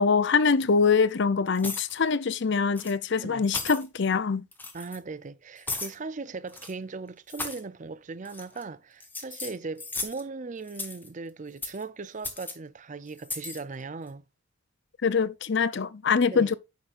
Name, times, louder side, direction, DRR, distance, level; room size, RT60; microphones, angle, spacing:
voice 1, 0.0-4.4 15.0-16.5, left 5 dB, 55° left, 0.6 m, -24 dB
sound 1, 1.5-2.0 2.7-2.9 3.4-3.9 4.5-5.0 5.7-6.0 6.5-6.7 7.3-7.6 8.2-8.6 9.0-10.2 10.7-11.1 11.6-11.8 12.2-12.5 13.2-13.6, left 3 dB, 10° left, 1.4 m, -36 dB
voice 2, 4.7-14.2 16.3-16.5, right 4 dB, 35° right, 0.5 m, -38 dB
9.4 x 6.6 x 2.5 m
head